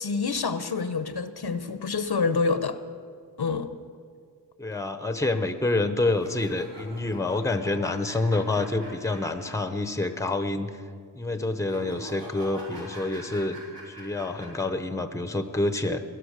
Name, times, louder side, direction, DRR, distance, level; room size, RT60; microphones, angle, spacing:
voice 1, 0.0-2.8 3.4-3.7, left 4 dB, 65° left, 11 dB, 0.9 m, -27 dB
voice 2, 4.6-10.8 11.1-13.6 13.9-16.0, left 2 dB, 5° left, 9 dB, 0.9 m, -27 dB
sound 1, 6.1-9.8 10.1-10.2 11.6-14.7, right 1 dB, 85° right, 4.9 m, -44 dB
17.5 x 12.0 x 6.6 m, 2.1 s
wide cardioid pair, 70°, 42 cm